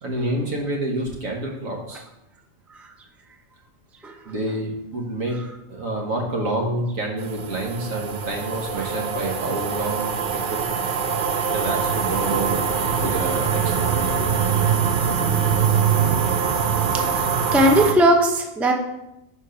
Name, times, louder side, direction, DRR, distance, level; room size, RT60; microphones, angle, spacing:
voice 1, 0.0-2.0 4.3-5.4 5.7-10.6 11.5-12.6 13.0-13.9, right 1 dB, 85° right, 0 dB, 1.7 m, -28 dB
sound 1, 7.2-17.9, right 7 dB, 50° right, 0.6 m, -23 dB
voice 2, 16.9-18.7, right 1 dB, ahead, 2 dB, 0.5 m, -19 dB
6.4 x 4.5 x 5.6 m, 0.90 s
omnidirectional pair, 1.3 m